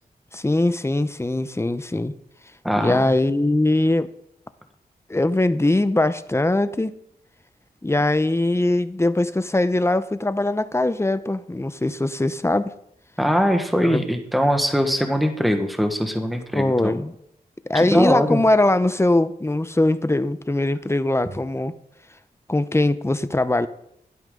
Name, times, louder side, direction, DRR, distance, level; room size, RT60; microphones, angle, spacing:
voice 1, 0.3-2.1 2.8-4.1 5.1-6.9 7.8-12.7 13.8-14.0 16.5-17.1 17.7-21.7 22.5-23.7, left 2 dB, 15° left, 13 dB, 0.8 m, -21 dB
voice 2, 2.6-3.1 13.2-16.9 17.8-18.4, equal, ahead, 5 dB, 1.4 m, -21 dB
12.5 x 10.5 x 3.9 m, 0.73 s
cardioid pair, 60°, 17 cm